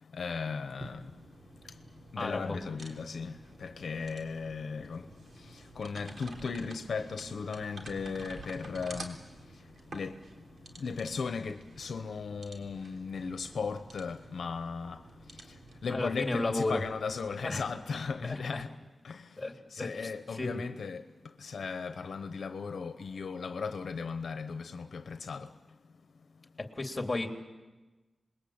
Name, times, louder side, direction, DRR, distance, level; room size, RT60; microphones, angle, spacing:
voice 1, 0.1-1.2 2.1-9.2 9.9-10.2 10.8-15.0 15.3-18.7 19.0-19.4 19.7-21.1 21.4-25.5, left 5 dB, 85° left, 1.0 m, -37 dB
sound 1, 0.8-18.4, right 2 dB, 70° right, 3.5 m, -50 dB
voice 2, 2.2-2.6 15.9-16.8 17.4-17.6 18.2-18.6 19.4-19.9 20.3-20.6 26.6-27.3, left 2 dB, 30° left, 3.3 m, -33 dB
27.5 x 21.5 x 8.8 m
wide cardioid pair, 75°, 0 cm